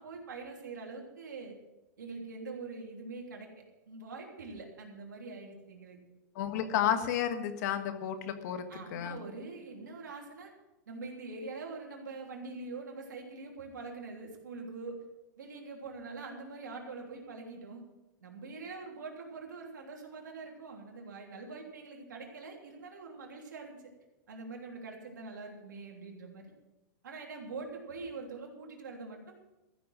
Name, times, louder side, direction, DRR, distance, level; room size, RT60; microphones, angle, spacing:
voice 1, 0.0-1.5 2.0-6.0 8.7-10.5 10.9-15.0 15.4-17.8 18.2-23.9 24.3-26.5 27.0-29.3, right 3 dB, 90° right, 0 dB, 3.2 m, -44 dB
voice 2, 6.3-8.7 8.9-9.2, left 9 dB, 60° left, 8 dB, 1.6 m, -31 dB
14.5 x 6.9 x 7.6 m, 1.0 s
hypercardioid pair, 125°, 10 cm